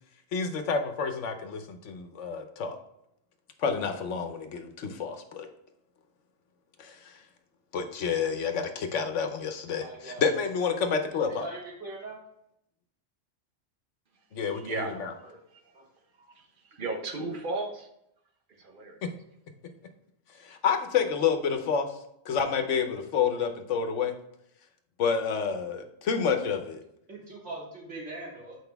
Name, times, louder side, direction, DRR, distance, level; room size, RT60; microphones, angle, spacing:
voice 1, 0.3-2.8 3.6-5.5 6.8-7.1 7.7-11.5 14.3-15.1 19.0-19.1 20.4-21.9 22.3-24.1 25.0-26.8, left 6 dB, 85° left, 7 dB, 1.2 m, -29 dB
voice 2, 9.7-10.3 11.3-12.2 15.0-15.3 15.7-15.8 27.1-28.6, right 2 dB, 75° right, -5 dB, 2.8 m, -42 dB
voice 3, 14.5-15.0 15.5-15.7 16.2-17.9 18.5-19.0, right 3 dB, 45° right, 3 dB, 1.1 m, -35 dB
7.9 x 4.9 x 3.4 m, 0.78 s
omnidirectional pair, 1.2 m